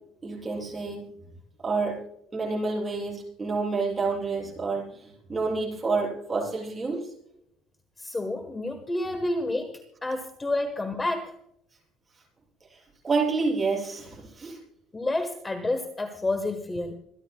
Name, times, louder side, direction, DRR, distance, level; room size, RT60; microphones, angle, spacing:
voice 1, 0.2-1.0 1.6-2.0 2.3-7.1 12.7-12.8 13.0-14.6, right 4 dB, 15° right, -3 dB, 6.6 m, -28 dB
voice 2, 8.0-11.4 14.9-16.9, left 2 dB, 15° left, 7 dB, 1.2 m, -29 dB
26.5 x 11.5 x 2.2 m, 0.78 s
cardioid pair, 160°, 0 cm